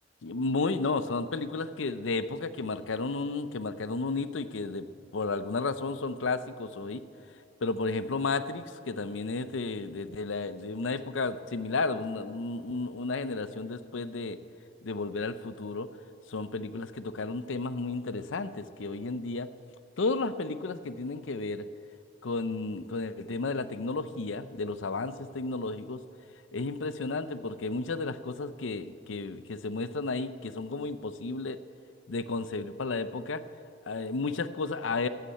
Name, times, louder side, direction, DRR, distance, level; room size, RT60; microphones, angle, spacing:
voice 1, 0.2-4.9 5.1-7.0 7.6-14.4 14.8-15.9 16.3-19.5 20.0-21.7 22.2-26.0 26.5-31.6 32.1-33.4 33.9-35.1, left 3 dB, 80° left, 13 dB, 0.6 m, -32 dB
13.5 x 8.4 x 8.5 m, 2.6 s
head